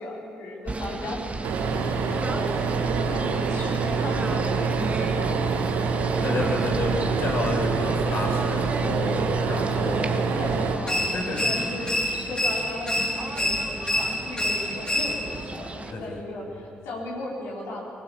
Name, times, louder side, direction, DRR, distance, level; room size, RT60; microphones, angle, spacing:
voice 1, 0.0-1.6 2.0-6.7 9.6-17.9, left 2 dB, 75° left, -4 dB, 5.0 m, -36 dB
Singing / Bird, 0.7-15.9, right 3 dB, 30° right, 1.9 m, -35 dB
sound 1, 1.4-10.8, right 5 dB, 70° right, 1.7 m, -26 dB
voice 2, 1.9-2.2 6.2-10.2 10.5-10.7 11.1-11.6 15.9-16.2, left 2 dB, 60° left, -1 dB, 5.9 m, -30 dB
sound 2, 10.9-15.5, left 1 dB, 15° left, 2.8 m, -27 dB
20.5 x 20.0 x 7.4 m, 2.5 s
hypercardioid pair, 45°, 5 cm